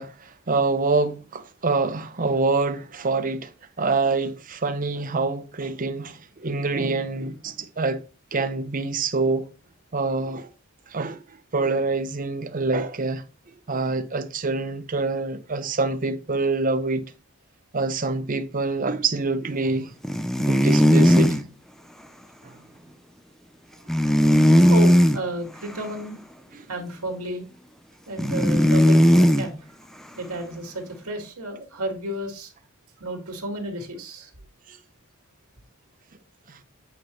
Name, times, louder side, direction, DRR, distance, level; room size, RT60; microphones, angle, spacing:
voice 1, 0.0-3.5 3.8-8.0 8.3-9.5 9.9-10.5 10.9-11.2 11.5-13.2 13.7-17.0 17.7-19.9 20.5-21.4 22.4-22.6 34.7-34.8 36.5-36.6, right 3 dB, 35° right, 0.7 m, -26 dB
sound 1, 20.0-21.4 23.9-25.2 28.2-29.5, equal, ahead, 0.4 m, -17 dB
voice 2, 24.7-26.2 26.7-27.4 28.1-29.8 30.2-32.5 33.0-34.3, right 1 dB, 85° right, 2.1 m, -32 dB
8.5 x 4.7 x 3.1 m
head